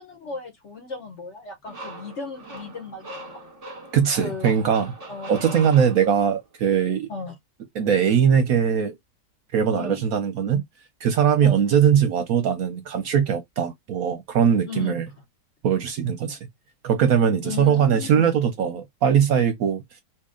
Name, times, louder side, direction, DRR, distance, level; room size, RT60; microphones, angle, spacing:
voice 1, 0.0-3.4 4.2-4.5 5.1-5.8 7.1-7.3 9.7-10.0 11.4-11.7 14.7-15.1 17.4-18.3, left 5 dB, 50° left, 1.0 m, -36 dB
sound 1, 1.7-6.5, right 2 dB, 25° right, 0.9 m, -41 dB
voice 2, 3.9-4.9 5.3-7.1 7.8-9.0 9.5-10.6 11.0-15.0 15.6-16.4 16.8-19.8, right 8 dB, 65° right, 0.9 m, -20 dB
2.9 x 2.8 x 3.6 m
omnidirectional pair, 1.9 m